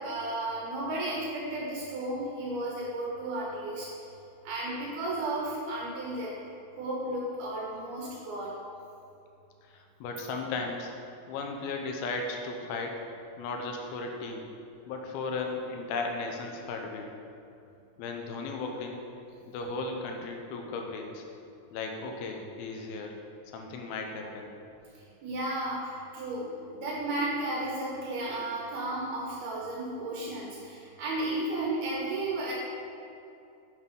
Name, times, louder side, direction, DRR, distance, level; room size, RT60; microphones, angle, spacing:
voice 1, 0.0-3.9 4.5-6.4 6.8-8.6 25.2-32.5, right 1 dB, 80° right, -5 dB, 3.5 m, -33 dB
voice 2, 9.6-10.9 11.3-13.0 13.4-14.5 14.9-17.1 18.0-19.0 19.5-21.2 21.7-23.2 23.5-24.5, left 3 dB, 80° left, 2 dB, 2.7 m, -36 dB
10.0 x 7.9 x 3.9 m, 2.7 s
omnidirectional pair, 4.4 m